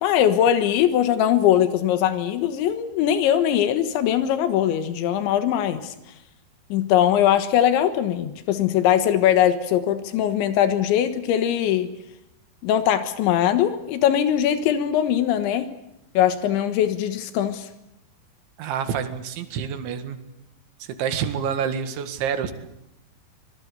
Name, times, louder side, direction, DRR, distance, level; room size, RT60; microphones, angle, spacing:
voice 1, 0.0-5.9 6.7-11.9 12.6-15.7 16.2-17.7, left 10 dB, 90° left, 9 dB, 3.7 m, -21 dB
voice 2, 18.6-20.2 20.8-22.5, right 8 dB, 85° right, 8 dB, 4.2 m, -27 dB
25.5 x 21.0 x 8.2 m, 0.84 s
omnidirectional pair, 5.2 m